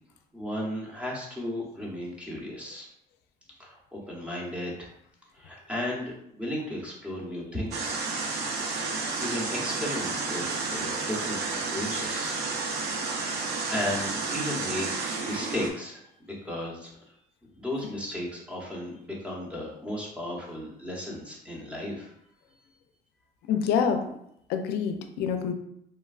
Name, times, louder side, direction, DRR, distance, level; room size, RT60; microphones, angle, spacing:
voice 1, 0.3-2.9 3.6-4.9 5.3-8.0 8.7-12.4 13.7-16.9 17.6-22.1, left 1 dB, 5° right, -3 dB, 0.8 m, -35 dB
sound 1, 7.7-15.7, right 4 dB, 75° right, 0.5 m, -31 dB
voice 2, 23.5-24.0 24.5-25.5, left 7 dB, 80° left, 6 dB, 0.4 m, -26 dB
3.2 x 2.2 x 2.3 m, 0.75 s
cardioid pair, 110°, 17 cm